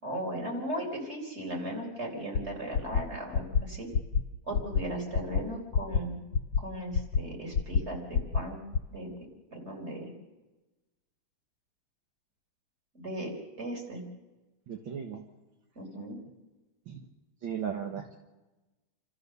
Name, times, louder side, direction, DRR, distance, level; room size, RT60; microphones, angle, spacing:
voice 1, 0.0-3.9 4.5-6.2 6.6-8.6 8.9-9.1 9.5-10.1 12.9-13.3 13.6-14.0 15.8-16.2, right 1 dB, 30° right, 0 dB, 4.6 m, -37 dB
sound 1, 2.4-2.5 2.7-3.0 3.3-3.6 3.9-4.2 4.5-4.8 5.1-5.4 5.7-6.0 6.3-6.6 6.9-7.2 7.5-7.8 8.1-8.4 8.7-8.8, left 6 dB, 75° left, 1.6 m, -26 dB
voice 2, 14.7-15.3 16.9-17.1 17.4-18.2, right 8 dB, 70° right, 4 dB, 2.1 m, -36 dB
29.0 x 14.0 x 6.8 m, 1.1 s
omnidirectional pair, 2.3 m